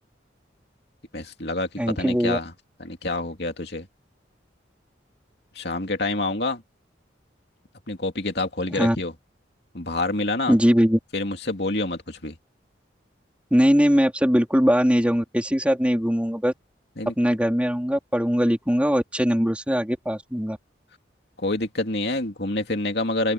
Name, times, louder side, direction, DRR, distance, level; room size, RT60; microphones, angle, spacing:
voice 1, 1.1-2.5 2.8-3.9 5.5-6.6 7.9-9.1 9.7-10.6 11.1-12.4 17.0-17.1 21.4-23.3, left 2 dB, 60° left, 2.7 m, -27 dB
voice 2, 1.8-2.4 8.7-9.0 10.5-11.0 13.5-16.5 17.1-20.6, equal, 5° right, 4.3 m, -21 dB
open air
head